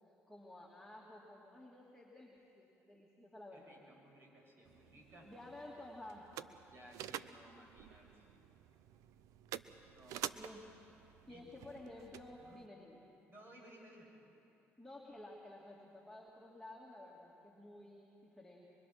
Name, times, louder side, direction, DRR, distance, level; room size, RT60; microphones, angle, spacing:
voice 1, 0.3-3.8 5.2-6.6 10.4-10.9 11.3-13.0 14.8-18.7, left 1 dB, ahead, -5 dB, 3.0 m, -53 dB
voice 2, 3.5-5.3 6.7-8.4 9.9-10.4 11.2-11.7 12.4-12.6 13.3-14.1, right 1 dB, 45° right, -1 dB, 7.8 m, -59 dB
sound 1, 4.7-12.7, right 11 dB, 80° right, 0.6 m, -50 dB
24.0 x 23.5 x 6.2 m, 2.9 s
supercardioid pair, 80°, 6 cm